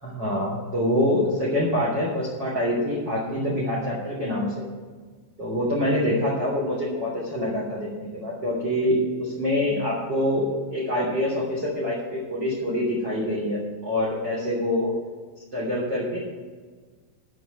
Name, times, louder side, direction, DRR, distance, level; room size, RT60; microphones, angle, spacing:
voice 1, 0.0-4.7 5.4-14.9 15.5-16.2, left 1 dB, 30° right, -4 dB, 2.6 m, -25 dB
13.0 x 5.7 x 9.2 m, 1.5 s
omnidirectional pair, 5.6 m